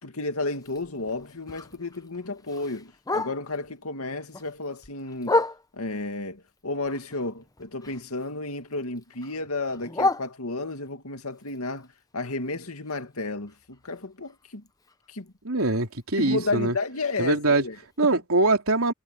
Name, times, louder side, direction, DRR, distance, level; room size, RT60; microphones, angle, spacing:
voice 1, 0.0-5.4 5.7-14.6 15.1-15.3 16.2-18.1, left 2 dB, 85° left, 2.3 m, -32 dB
Bark, 0.5-3.7 4.1-6.0 6.5-8.3 8.6-10.9 11.3-15.3 15.6-15.7 16.0-16.4 16.8-16.9 17.3-17.4 17.9-18.0, left 2 dB, 15° left, 0.9 m, -33 dB
voice 2, 15.5-16.8 17.2-17.6 18.0-18.9, right 2 dB, 75° right, 3.6 m, -23 dB
head